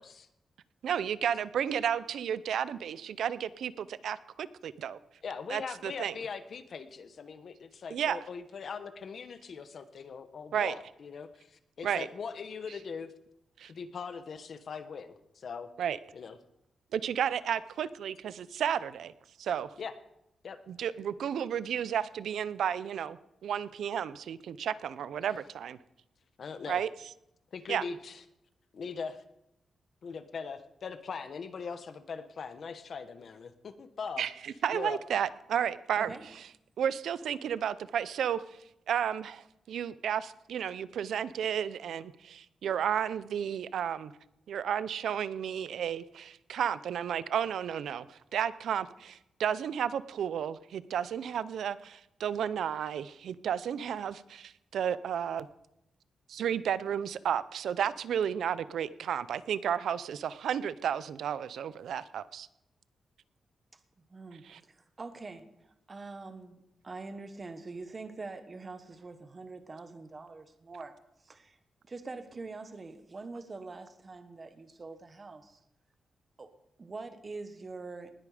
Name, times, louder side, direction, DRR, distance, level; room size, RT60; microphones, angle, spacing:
voice 1, 0.8-5.0 5.5-6.1 7.9-8.2 10.5-10.8 11.8-12.1 13.6-13.7 15.8-16.0 16.9-19.1 19.4-19.7 20.7-25.8 26.7-26.9 27.7-27.8 34.2-36.1 36.8-38.4 38.9-44.1 44.5-55.5 56.3-62.5 64.4-64.6, right 8 dB, 90° right, 16 dB, 0.6 m, -32 dB
voice 2, 5.2-13.1 13.7-15.7 16.1-16.4 19.8-19.9 20.4-20.6 26.4-26.8 27.5-28.2 28.7-29.2 30.0-34.3 34.7-35.0, left 5 dB, 55° left, 10 dB, 1.1 m, -41 dB
voice 3, 36.0-36.3 64.1-65.4 65.9-70.9 71.2-71.6 71.8-75.6 76.4-76.5 76.8-78.1, right 3 dB, 30° right, 9 dB, 1.2 m, -44 dB
19.5 x 8.5 x 5.0 m, 0.83 s
wide cardioid pair, 130°, 0 cm